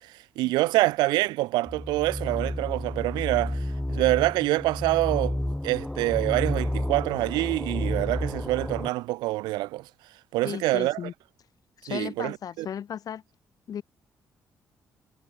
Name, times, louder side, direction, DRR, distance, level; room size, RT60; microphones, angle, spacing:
voice 1, 0.0-5.4 5.6-9.9 10.3-11.1 11.9-12.7, right 19 dB, 85° right, 0.7 m, -26 dB
sound 1, 1.7-8.9, left 1 dB, 10° left, 0.8 m, -31 dB
voice 2, 10.4-11.1 11.8-13.2 13.7-13.8, left 9 dB, 60° left, 0.7 m, -35 dB
supercardioid pair, 50°, 7 cm